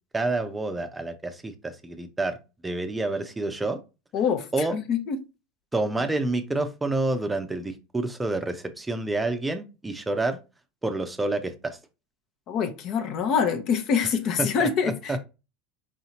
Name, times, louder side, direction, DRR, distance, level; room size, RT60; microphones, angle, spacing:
voice 1, 0.1-3.8 4.5-4.8 5.7-10.4 10.8-11.8 14.0-14.1 14.4-15.2, right 2 dB, 15° right, 0.6 m, -28 dB
voice 2, 4.1-4.5 4.9-5.2 12.5-15.2, left 6 dB, 45° left, 0.7 m, -25 dB
4.8 x 2.7 x 2.9 m
hypercardioid pair, 80°, 0 cm